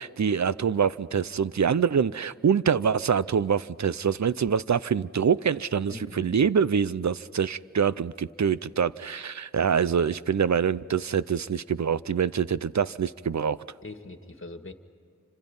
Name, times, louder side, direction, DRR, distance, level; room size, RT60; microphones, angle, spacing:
voice 1, 0.0-13.6, right 7 dB, 65° right, 0.6 m, -25 dB
voice 2, 5.9-6.4 13.8-14.7, left 2 dB, 45° left, 1.9 m, -42 dB
28.5 x 26.5 x 5.5 m
wide cardioid pair, 65°, 30 cm